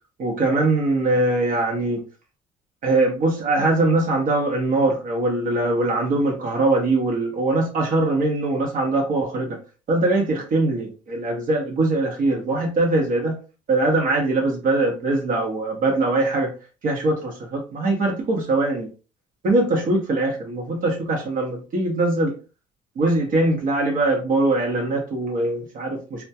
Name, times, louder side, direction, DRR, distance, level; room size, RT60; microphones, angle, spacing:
voice 1, 0.2-2.0 2.8-9.6 9.9-13.4 13.7-16.5 16.8-18.9 19.4-22.3 23.0-26.2, right 2 dB, 55° right, 0.7 m, -22 dB
2.2 x 2.2 x 2.7 m
cardioid pair, 110°, 17 cm